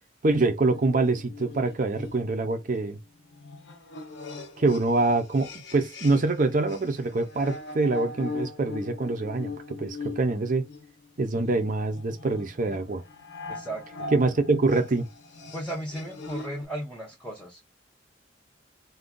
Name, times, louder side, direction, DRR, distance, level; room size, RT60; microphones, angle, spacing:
voice 1, 0.2-3.0 4.6-10.6 11.2-13.0 14.1-15.0, right 3 dB, 45° right, 0.6 m, -25 dB
sound 1, 0.7-6.4 6.7-16.7, left 3 dB, 85° left, 0.8 m, -41 dB
voice 2, 13.5-13.8 15.5-17.7, right 1 dB, 5° left, 0.7 m, -35 dB
2.5 x 2.3 x 3.6 m
head